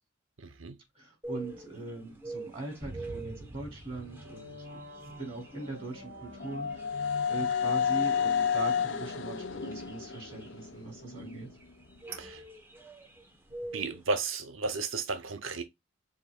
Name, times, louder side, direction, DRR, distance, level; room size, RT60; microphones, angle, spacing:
voice 1, 0.4-0.8 12.1-12.4 13.7-15.6, right 4 dB, 90° right, 0.8 m, -33 dB
voice 2, 0.9-4.8 5.2-11.5, right 3 dB, 30° right, 3.6 m, -41 dB
sound 1, 1.2-14.1, right 2 dB, 10° right, 0.9 m, -47 dB
sound 2, 2.8-7.2, right 1 dB, 55° right, 1.8 m, -47 dB
sound 3, 5.6-11.5, left 7 dB, 65° left, 0.6 m, -31 dB
7.1 x 2.7 x 2.3 m
head